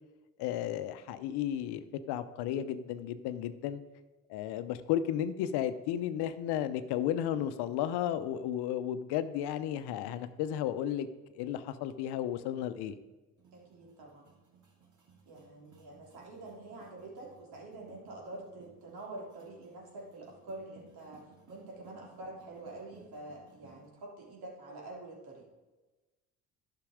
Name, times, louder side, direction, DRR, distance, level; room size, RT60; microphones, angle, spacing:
voice 1, 0.4-3.8 4.3-11.1 11.4-13.0, left 10 dB, 65° left, 12 dB, 0.8 m, -33 dB
sound 1, 13.4-23.9, right 5 dB, 45° right, 2.3 m, -61 dB
voice 2, 13.5-14.3 15.3-25.5, right 2 dB, 60° right, -2 dB, 3.2 m, -47 dB
11.5 x 5.9 x 5.0 m, 1.2 s
hypercardioid pair, 55°, 42 cm